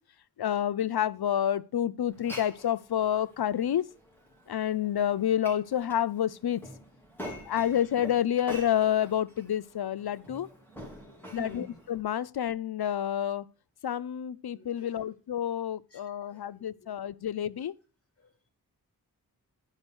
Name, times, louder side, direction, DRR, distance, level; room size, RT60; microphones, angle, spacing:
voice 1, 0.4-3.9 4.5-6.6 7.5-10.5 11.3-13.5 13.8-17.7, left 10 dB, 75° left, 0.6 m, -29 dB
Glass, 2.1-12.0, equal, 5° left, 3.9 m, -47 dB
voice 2, 10.9-11.8 14.5-15.0 15.9-16.0 16.3-16.9 18.2-18.5, left 1 dB, 35° left, 5.0 m, -48 dB
10.5 x 5.3 x 6.2 m
wide cardioid pair, 60°, 38 cm